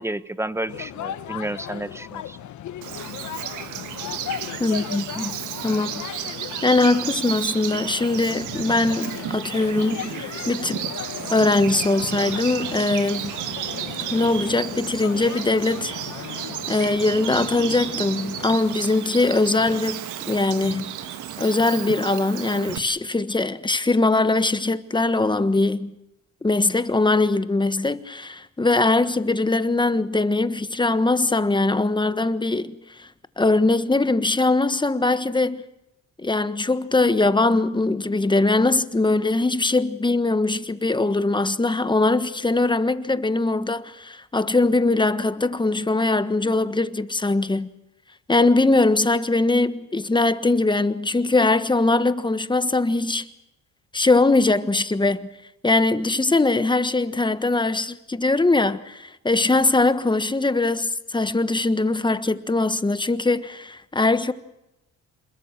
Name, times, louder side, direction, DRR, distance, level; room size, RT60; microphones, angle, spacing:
voice 1, 0.0-2.4, right 1 dB, 10° right, 1.2 m, -31 dB
sound 1, 0.7-18.5, left 11 dB, 70° left, 1.2 m, -36 dB
Bird vocalization bird call bird song, 2.8-22.8, right 11 dB, 85° right, 1.7 m, -33 dB
voice 2, 4.6-5.3 5.6-6.1 6.6-10.8 11.3-13.3 14.1-16.3 16.7-20.9 21.4-26.0 26.4-33.1 33.4-35.6 36.2-47.7 48.3-53.3 53.9-55.3 55.6-64.3, left 2 dB, 15° left, 1.4 m, -21 dB
27.0 x 21.5 x 7.4 m
cardioid pair, 90°, 30 cm